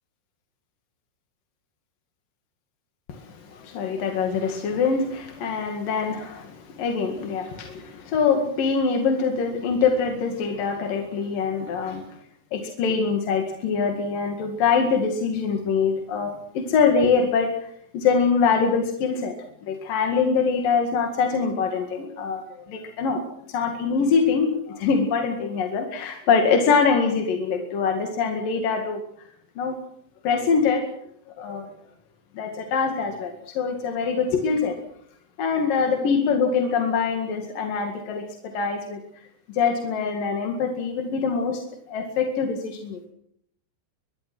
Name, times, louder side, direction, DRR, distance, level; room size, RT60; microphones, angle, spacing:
voice 1, 3.1-12.0 12.5-19.3 19.6-23.2 23.5-29.0 29.6-29.8 30.2-30.9 31.4-31.7 32.4-34.7 35.4-38.2 38.5-39.0 39.5-41.6 41.9-43.1, left 5 dB, 55° left, 3 dB, 3.1 m, -24 dB
23.0 x 22.5 x 6.2 m, 0.71 s
omnidirectional pair, 5.8 m